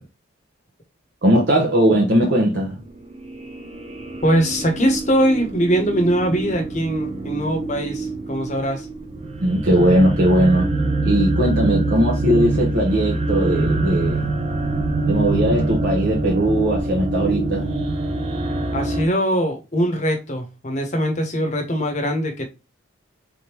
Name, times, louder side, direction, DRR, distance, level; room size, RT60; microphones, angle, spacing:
voice 1, 1.2-2.8 9.4-10.7 11.0-14.3 15.0-17.7, right 1 dB, 55° right, 0.9 m, -19 dB
sound 1, 2.8-19.1, right 2 dB, 30° right, 0.5 m, -25 dB
voice 2, 4.2-8.9 18.7-22.5, equal, 35° left, 0.9 m, -21 dB
3.9 x 3.5 x 2.9 m
head